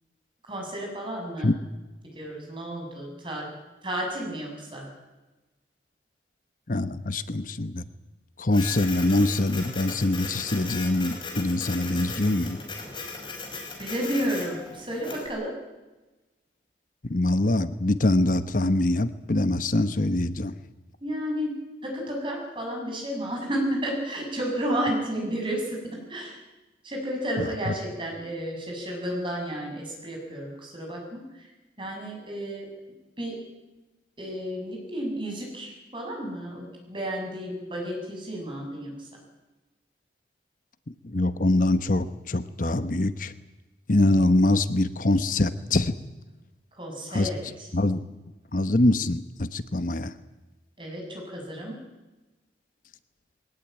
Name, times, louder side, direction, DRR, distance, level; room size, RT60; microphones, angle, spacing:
voice 1, 0.5-1.5 2.1-3.4 3.8-4.9 13.8-15.5 21.0-21.5 21.8-25.8 26.1-26.4 26.8-31.4 31.8-32.7 33.2-33.4 34.2-39.1 46.7-47.7 50.8-51.8, equal, 25° right, 0 dB, 7.1 m, -32 dB
voice 2, 6.7-7.8 8.4-12.6 17.0-20.5 27.4-27.7 41.0-43.3 43.9-45.9 47.1-47.3 47.7-48.0 48.5-50.1, left 2 dB, 45° left, 12 dB, 1.0 m, -24 dB
Printer, 8.5-15.3, left 4 dB, 25° left, 5.4 m, -37 dB
21.0 x 19.0 x 9.1 m, 1.1 s
head